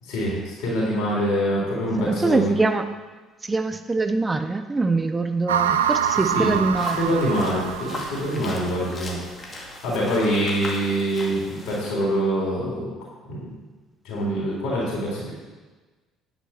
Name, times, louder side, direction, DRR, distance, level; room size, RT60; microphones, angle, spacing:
voice 1, 0.0-2.5 6.3-6.6 7.0-12.9 13.3-13.5 14.0-15.3, equal, 65° left, -5 dB, 3.9 m, -25 dB
voice 2, 2.0-2.8 3.4-7.5, right 3 dB, 20° right, 9 dB, 0.8 m, -24 dB
sound 1, 5.5-8.8, right 8 dB, 80° right, 0.4 m, -25 dB
sound 2, 6.8-11.9, left 2 dB, 30° left, 2.3 m, -38 dB
10.0 x 8.6 x 4.6 m, 1.3 s
figure-of-eight pair, 55°, 0 cm